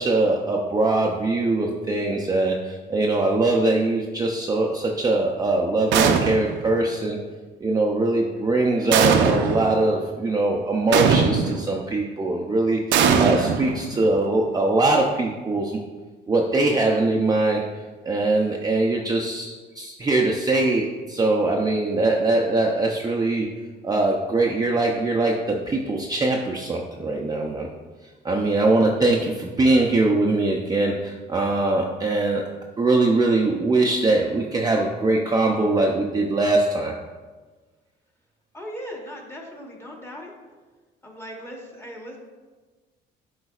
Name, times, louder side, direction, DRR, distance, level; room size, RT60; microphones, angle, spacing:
voice 1, 0.0-7.2 7.6-15.8 16.3-17.6 18.0-23.5 23.8-27.7 28.2-32.4 32.8-36.9, right 2 dB, 20° right, -1 dB, 0.5 m, -22 dB
sound 1, 5.9-6.7 8.9-9.7 10.9-11.7 12.9-14.1, right 6 dB, 75° right, 0.6 m, -20 dB
voice 2, 38.5-40.3 41.0-42.2, equal, 15° left, 0 dB, 1.2 m, -38 dB
10.5 x 3.9 x 2.4 m, 1.3 s
cardioid pair, 125°, 19 cm